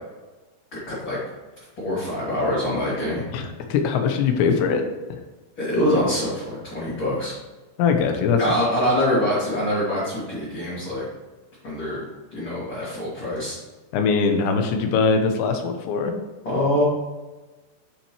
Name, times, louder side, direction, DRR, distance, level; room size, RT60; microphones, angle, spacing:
voice 1, 0.7-1.2 1.8-3.2 5.6-7.3 8.4-11.1 11.6-12.0 12.3-13.6 16.4-16.8, equal, 30° left, -10 dB, 2.6 m, -24 dB
voice 2, 3.3-4.8 7.8-8.4 13.9-16.1, left 5 dB, 85° left, 5 dB, 3.1 m, -21 dB
10.0 x 5.8 x 3.1 m, 1.2 s
omnidirectional pair, 5.1 m